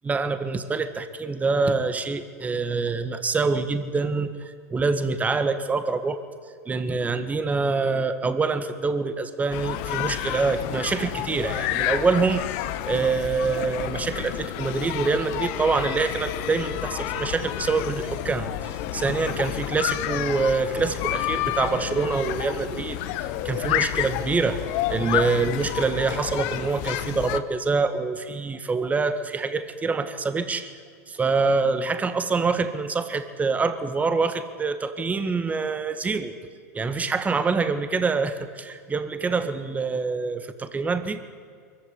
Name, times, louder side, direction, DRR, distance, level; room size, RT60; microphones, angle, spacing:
voice 1, 0.0-6.2 6.6-12.4 12.9-24.6 24.9-30.7 31.1-36.3 36.7-41.2, right 4 dB, 15° right, 10 dB, 1.8 m, -25 dB
sound 1, 9.5-27.4, left 13 dB, 60° left, 1.3 m, -30 dB
23.0 x 15.0 x 9.8 m, 2.2 s
hypercardioid pair, 115°, 9 cm